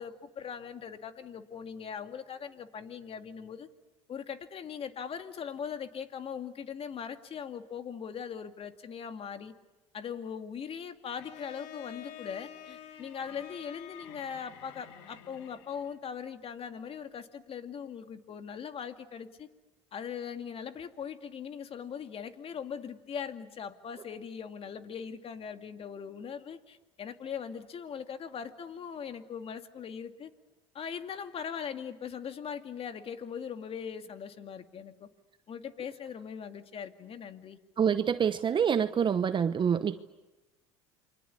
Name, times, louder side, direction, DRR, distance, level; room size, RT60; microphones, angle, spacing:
voice 1, 0.0-3.7 4.1-9.5 9.9-19.5 19.9-30.3 30.7-35.1 35.5-37.6, left 7 dB, 45° left, 8 dB, 2.3 m, -40 dB
Bowed string instrument, 11.2-16.1, left 10 dB, 85° left, 2.3 m, -49 dB
voice 2, 37.8-40.0, right 7 dB, 35° right, 11 dB, 1.0 m, -26 dB
28.5 x 24.0 x 8.6 m, 1.1 s
supercardioid pair, 90°, 14 cm